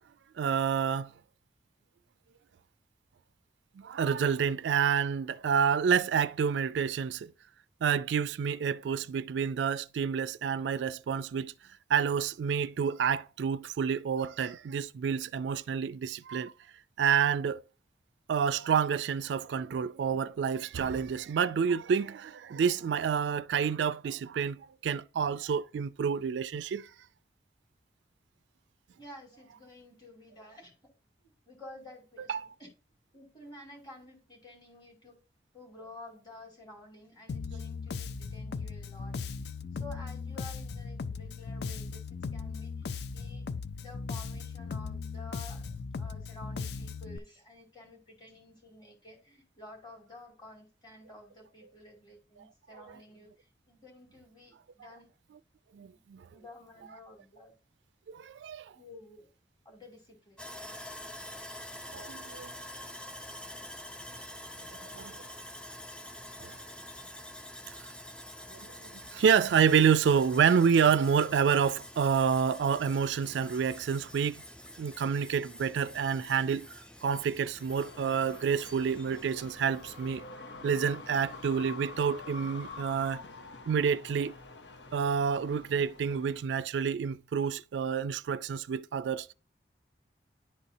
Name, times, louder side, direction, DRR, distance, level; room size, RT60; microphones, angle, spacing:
voice 1, 0.4-1.1 3.8-7.3 7.8-11.5 11.9-16.5 17.0-17.6 18.3-26.9 32.3-32.5 52.4-52.5 52.7-53.0 55.7-56.3 58.1-58.7 61.9-62.5 64.8-65.2 66.4-66.6 68.5-68.7 69.1-74.4 74.8-76.7 77.0-80.2 80.6-83.2 83.7-84.4 84.9-89.3, right 7 dB, 90° right, 0.3 m, -28 dB
voice 2, 29.0-30.7 31.2-32.7 33.1-35.2 35.5-39.3 39.7-43.4 43.8-55.1 55.8-56.0 56.3-57.6 58.4-59.3 59.6-60.4, left 1 dB, 25° left, 2.4 m, -51 dB
Bass guitar, 37.3-47.2, left 5 dB, 70° left, 0.4 m, -38 dB
Sawing, 60.4-80.3, left 1 dB, 5° left, 0.4 m, -47 dB
Trains coming and going, 77.7-86.4, left 3 dB, 85° left, 0.8 m, -47 dB
10.5 x 4.1 x 2.7 m
head